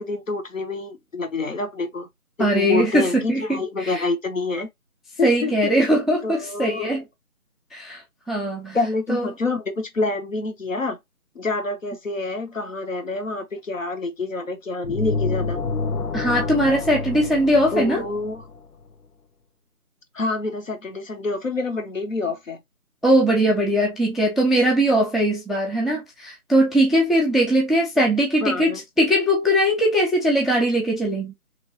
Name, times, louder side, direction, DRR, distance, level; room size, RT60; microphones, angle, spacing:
voice 1, 0.0-2.1 2.4-4.7 5.2-5.7 6.2-6.9 8.7-11.0 11.3-15.6 17.7-18.4 20.1-22.6 28.4-28.8, left 3 dB, 60° left, 0.8 m, -27 dB
voice 2, 2.4-4.1 5.2-7.0 7.7-8.0 8.3-8.8 9.1-9.3 16.1-18.0 23.0-28.7 29.0-31.3, right 1 dB, ahead, 0.5 m, -20 dB
sound 1, 14.8-18.7, left 4 dB, 90° left, 0.7 m, -28 dB
3.0 x 2.4 x 2.6 m
figure-of-eight pair, 175°, 44 cm